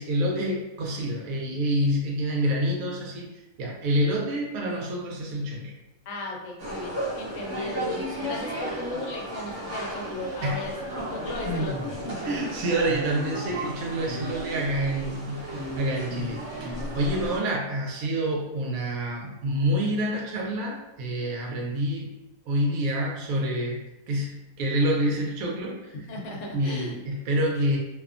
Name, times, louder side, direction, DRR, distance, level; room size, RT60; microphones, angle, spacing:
voice 1, 0.0-3.3 3.6-5.7 10.4-10.6 12.2-22.1 22.5-26.1 26.5-27.8, right 1 dB, 80° right, -1 dB, 1.1 m, -27 dB
voice 2, 6.1-12.3 26.1-27.0, left 2 dB, 70° left, 0 dB, 0.9 m, -36 dB
sound 1, 6.6-17.4, equal, 60° right, 1.1 m, -33 dB
2.6 x 2.2 x 2.4 m, 0.93 s
omnidirectional pair, 1.5 m